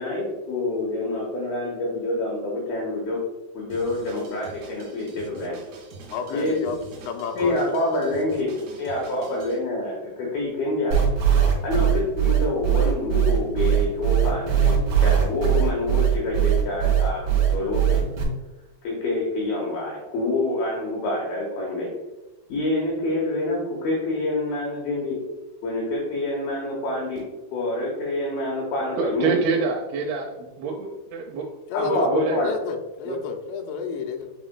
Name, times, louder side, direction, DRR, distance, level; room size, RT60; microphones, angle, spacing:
voice 1, 0.0-3.2 3.5-5.6 6.3-6.7 7.4-8.5 8.8-11.0 11.6-18.0 18.8-21.9 22.5-25.1 25.6-27.2 27.5-29.4 31.7-32.5, left 2 dB, 70° left, -3 dB, 2.7 m, -27 dB
Drum kit, 3.7-9.6, right 2 dB, 70° right, 1.8 m, -45 dB
voice 2, 6.1-7.8 9.2-9.3 31.7-32.1 32.4-34.3, left 6 dB, 85° left, 4 dB, 2.6 m, -31 dB
sound 1, 10.9-18.2, right 9 dB, 55° right, 1.7 m, -20 dB
voice 3, 29.0-31.5 31.8-32.4 33.1-33.2, right 4 dB, 85° right, 0 dB, 2.2 m, -27 dB
9.0 x 4.9 x 2.2 m, 1.1 s
omnidirectional pair, 5.5 m